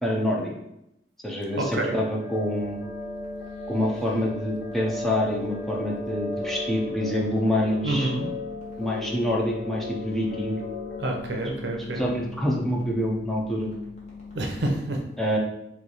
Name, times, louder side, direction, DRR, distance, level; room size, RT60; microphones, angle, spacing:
voice 1, 0.0-0.5 1.2-2.8 3.7-8.1 8.8-10.6 12.0-13.7 15.2-15.4, left 1 dB, ahead, -3 dB, 0.4 m, -26 dB
sound 1, 1.6-11.2, left 2 dB, 65° left, 0.6 m, -36 dB
voice 2, 1.6-2.0 7.8-8.3 11.0-12.1 14.3-15.0, right 2 dB, 85° right, 2 dB, 0.7 m, -28 dB
sound 2, 2.6-14.8, left 5 dB, 40° left, 1.0 m, -42 dB
3.1 x 2.4 x 3.8 m, 0.82 s
head